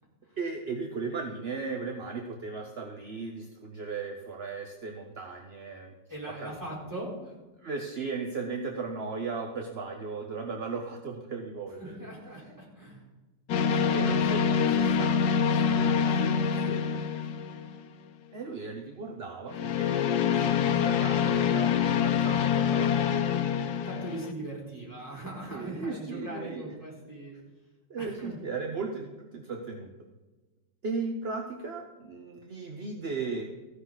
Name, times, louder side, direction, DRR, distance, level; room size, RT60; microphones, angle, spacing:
voice 1, 0.4-5.9 6.3-6.5 7.5-12.1 13.7-17.0 18.3-23.4 25.5-26.7 27.9-29.9 30.8-33.5, right 4 dB, 45° right, 3 dB, 0.9 m, -37 dB
voice 2, 6.1-7.3 11.8-13.0 23.8-27.4 28.0-28.4, right 1 dB, 10° right, -5 dB, 4.2 m, -40 dB
sound 1, 13.5-18.0 19.5-24.3, left 7 dB, 60° left, 1.2 m, -26 dB
15.0 x 11.0 x 4.1 m, 1.2 s
omnidirectional pair, 2.0 m